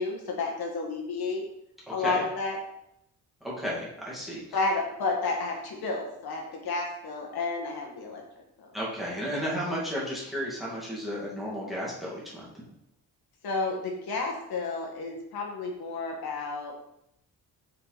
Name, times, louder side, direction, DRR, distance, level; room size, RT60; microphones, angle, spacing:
voice 1, 0.0-1.4 1.9-2.6 4.5-8.2 8.6-8.7 13.4-16.7, left 3 dB, 75° left, 0 dB, 1.7 m, -31 dB
voice 2, 3.4-4.4 8.7-12.5, equal, ahead, -6 dB, 2.4 m, -33 dB
7.8 x 4.8 x 4.1 m, 0.79 s
wide cardioid pair, 160°, 38 cm